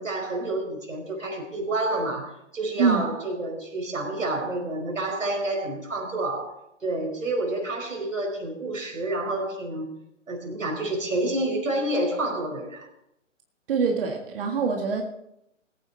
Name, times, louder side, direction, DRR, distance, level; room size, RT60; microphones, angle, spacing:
voice 1, 0.0-9.9 10.3-12.9, right 2 dB, 90° right, 2 dB, 5.2 m, -29 dB
voice 2, 2.8-3.1 13.7-15.0, right 5 dB, 45° right, 2 dB, 1.8 m, -24 dB
21.0 x 9.0 x 4.1 m, 0.79 s
hypercardioid pair, 140°, 38 cm